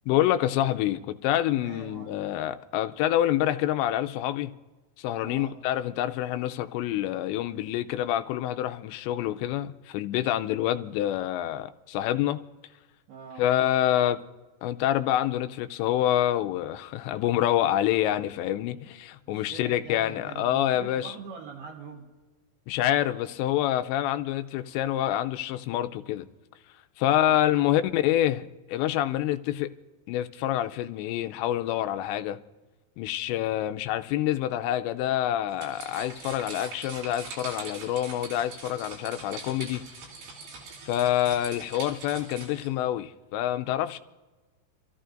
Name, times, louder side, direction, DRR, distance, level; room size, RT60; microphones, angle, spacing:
voice 1, 0.1-4.5 5.0-12.4 13.4-14.2 14.6-21.1 22.7-26.3 27.0-29.7 30.1-32.4 33.0-39.8 40.9-44.0, left 12 dB, 85° left, 2.8 m, -27 dB
voice 2, 1.6-2.2 5.2-5.6 13.1-13.5 19.3-22.1 27.0-27.9 41.5-41.6, right 5 dB, 70° right, 3.1 m, -44 dB
sound 1, 35.5-42.7, right 4 dB, 90° right, 5.3 m, -43 dB
27.5 x 14.0 x 2.5 m
omnidirectional pair, 5.1 m